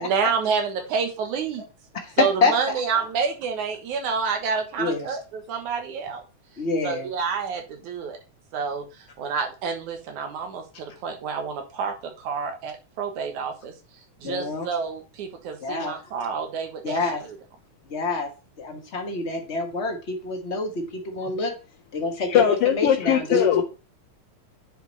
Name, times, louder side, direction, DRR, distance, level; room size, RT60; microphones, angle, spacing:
voice 1, 0.0-1.6 2.2-5.2 5.5-6.2 6.8-8.2 8.5-8.8 9.2-10.6 11.0-11.9 12.2-13.7 14.2-17.0, right 6 dB, 90° right, 5 dB, 2.8 m, -28 dB
voice 2, 2.4-3.0 4.8-5.2 6.6-7.1 14.2-14.7 15.6-15.9 16.8-17.2 17.9-18.3 18.6-21.5 21.9-23.6, left 3 dB, 45° left, 3 dB, 0.8 m, -27 dB
voice 3, 22.3-23.6, left 9 dB, 80° left, 5 dB, 1.3 m, -20 dB
9.0 x 5.1 x 4.0 m, 0.32 s
omnidirectional pair, 3.4 m